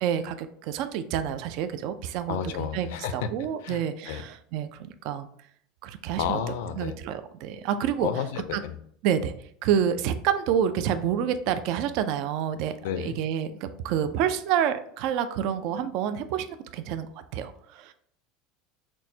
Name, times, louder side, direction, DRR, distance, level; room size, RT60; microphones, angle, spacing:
voice 1, 0.0-2.9 3.1-5.3 5.8-6.4 6.8-8.1 8.5-8.6 9.0-9.3 9.6-17.1 17.3-17.9, right 9 dB, 45° right, 10 dB, 0.3 m, -28 dB
voice 2, 2.3-3.3 3.6-4.2 6.2-6.9 8.0-8.8 12.8-13.2, left 8 dB, 75° left, 10 dB, 0.5 m, -31 dB
5.9 x 2.1 x 2.7 m, 0.64 s
cardioid pair, 180°, 0 cm